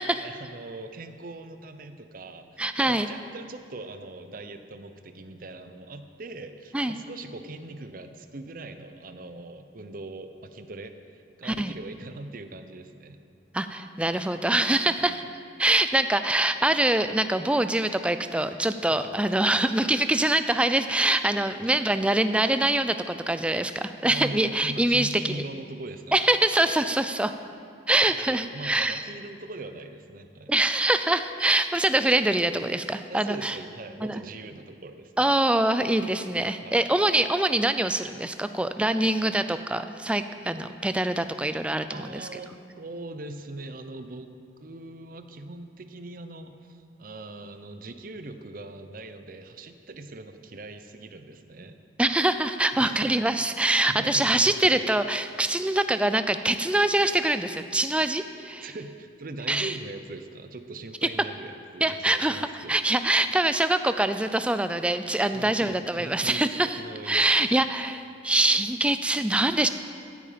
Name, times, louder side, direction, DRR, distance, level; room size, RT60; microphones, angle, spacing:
voice 1, 0.2-13.2 15.0-15.1 18.9-19.1 24.0-26.3 28.1-30.5 33.1-35.3 36.6-36.9 41.9-51.8 52.7-53.2 53.9-54.3 58.6-62.8 65.3-67.5, right 2 dB, 50° right, 8 dB, 0.7 m, -41 dB
voice 2, 2.6-3.1 6.7-7.0 11.4-11.7 13.5-15.2 15.6-25.4 26.1-27.3 27.9-29.1 30.5-33.6 34.0-34.2 35.2-42.4 52.0-58.7 59.5-59.8 61.0-61.1 61.8-66.8 67.1-69.7, right 1 dB, 5° right, 10 dB, 0.3 m, -24 dB
14.5 x 8.6 x 5.1 m, 2.4 s
head